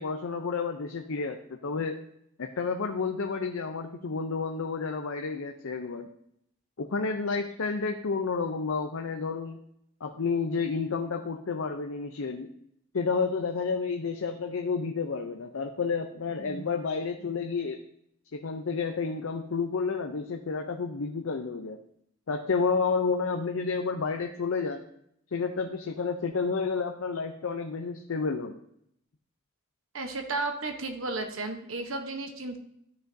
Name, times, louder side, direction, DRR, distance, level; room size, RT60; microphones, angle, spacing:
voice 1, 0.0-2.0 2.4-6.1 6.8-9.6 10.0-12.5 12.9-17.8 18.3-21.8 22.3-24.8 25.3-28.6, left 4 dB, 80° left, 4 dB, 0.6 m, -30 dB
voice 2, 16.4-16.7 29.9-32.6, right 3 dB, 75° right, 5 dB, 1.0 m, -34 dB
13.0 x 6.4 x 2.7 m, 0.73 s
head